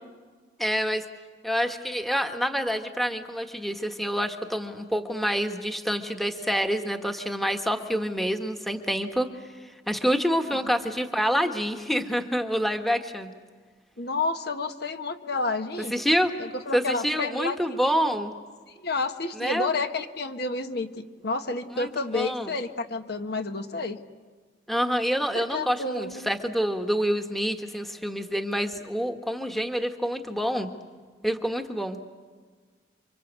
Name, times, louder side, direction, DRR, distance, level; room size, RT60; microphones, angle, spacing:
voice 1, 0.6-1.0 1.4-9.3 9.6-13.3 15.9-16.3 16.7-18.3 19.4-19.7 21.8-22.6 24.7-30.7 31.2-32.0, equal, ahead, 6 dB, 1.3 m, -27 dB
voice 2, 14.0-16.0 16.4-17.9 18.8-24.0 25.3-26.3, left 3 dB, 55° left, 7 dB, 1.3 m, -30 dB
29.5 x 24.5 x 8.2 m, 1.5 s
head